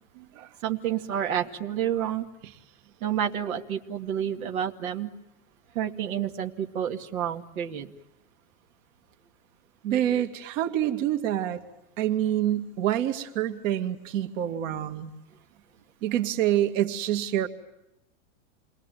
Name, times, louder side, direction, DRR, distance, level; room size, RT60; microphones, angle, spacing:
voice 1, 0.6-2.2 3.0-5.1 5.7-7.9, right 9 dB, 85° right, 3 dB, 2.5 m, -29 dB
voice 2, 9.8-11.7 12.0-15.1 16.0-17.5, right 11 dB, 65° right, 6 dB, 2.5 m, -26 dB
28.0 x 22.0 x 9.2 m, 0.90 s
supercardioid pair, 135°, 42 cm